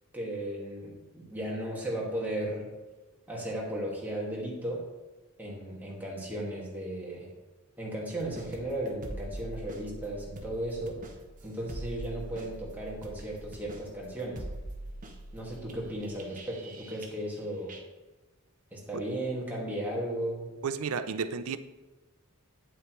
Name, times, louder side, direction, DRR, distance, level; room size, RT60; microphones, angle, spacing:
voice 1, 0.1-2.7 3.3-4.8 5.4-7.3 7.8-11.0 11.4-14.4 15.3-17.7 18.7-20.5, right 1 dB, 10° right, 2.0 m, -35 dB
sound 1, 8.2-17.4 17.7-17.8, right 1 dB, 40° right, 0.9 m, -43 dB
voice 2, 20.6-21.6, right 5 dB, 80° right, 0.5 m, -32 dB
8.7 x 8.4 x 3.1 m
head